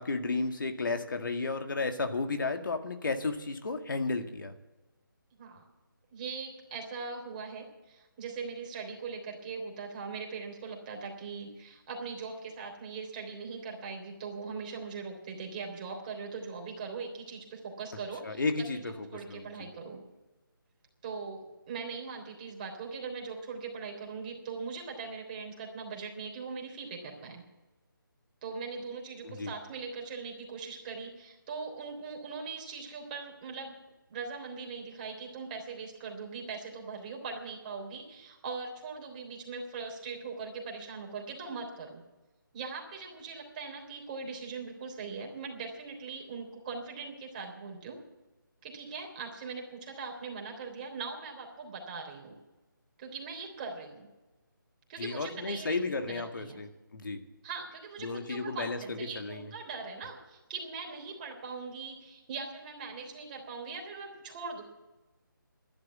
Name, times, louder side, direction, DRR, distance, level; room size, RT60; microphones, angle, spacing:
voice 1, 0.0-4.5 18.2-19.5 29.2-29.5 55.0-57.2 58.0-59.5, left 3 dB, 65° left, 6 dB, 1.9 m, -33 dB
voice 2, 6.1-20.0 21.0-27.4 28.4-33.7 34.1-42.0 42.5-48.0 48.6-52.3 53.0-54.1 54.9-56.6 57.4-64.6, right 4 dB, 25° right, 1 dB, 3.5 m, -41 dB
11.5 x 11.0 x 8.3 m, 1.1 s
figure-of-eight pair, 160°, 12 cm